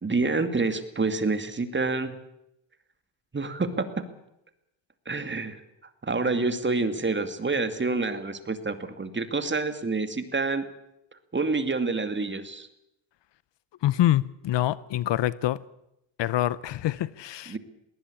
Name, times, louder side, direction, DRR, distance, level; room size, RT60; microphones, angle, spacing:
voice 1, 0.0-2.1 3.3-3.9 5.1-5.6 6.0-10.6 11.3-12.7 17.5-17.6, right 3 dB, 25° right, 2.3 m, -27 dB
voice 2, 13.8-15.6 16.2-17.6, left 13 dB, 70° left, 0.8 m, -25 dB
20.5 x 18.5 x 8.6 m
cardioid pair, 95°, 44 cm